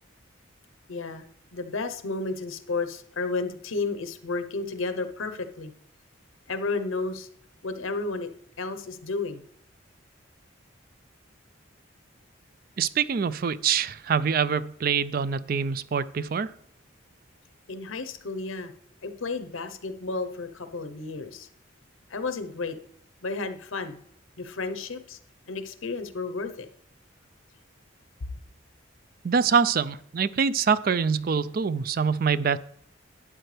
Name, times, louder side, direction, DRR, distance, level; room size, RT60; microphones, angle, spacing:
voice 1, 0.9-5.7 6.5-7.3 7.6-8.3 8.6-9.4 17.7-18.7 19.0-21.5 22.1-22.8 23.2-24.0 24.4-25.2 25.5-26.7, left 3 dB, 85° left, 0.9 m, -32 dB
voice 2, 12.8-16.5 29.2-32.6, right 6 dB, 45° right, 0.4 m, -25 dB
12.0 x 8.9 x 3.4 m
head